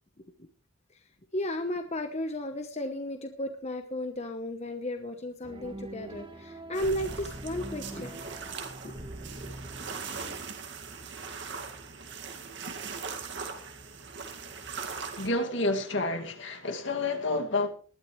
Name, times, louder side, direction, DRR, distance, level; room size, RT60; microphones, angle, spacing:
voice 1, 1.3-8.2 8.5-8.9, left 1 dB, 35° left, 1.0 m, -34 dB
sound 1, 5.4-10.4, right 1 dB, 25° right, 1.6 m, -43 dB
sound 2, 6.7-15.3, right 5 dB, 60° right, 2.1 m, -40 dB
voice 2, 15.2-17.7, left 2 dB, 65° left, 2.3 m, -29 dB
20.0 x 12.5 x 3.2 m
head